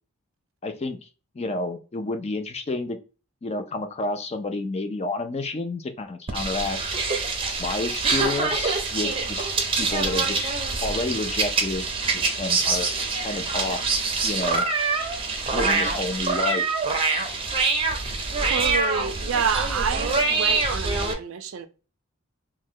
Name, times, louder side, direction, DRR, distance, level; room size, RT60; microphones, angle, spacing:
voice 1, 0.6-1.0 1.4-3.0 3.4-6.8 7.6-9.5 9.8-10.5 10.8-11.9 12.1-12.9 13.2-13.9 14.2-14.7 15.5-16.6, left 2 dB, 30° left, 0.4 m, -30 dB
sound 1, 6.3-21.1, right 4 dB, 25° right, 0.6 m, -25 dB
voice 2, 18.5-21.7, right 6 dB, 75° right, 0.5 m, -28 dB
3.0 x 2.2 x 3.6 m
head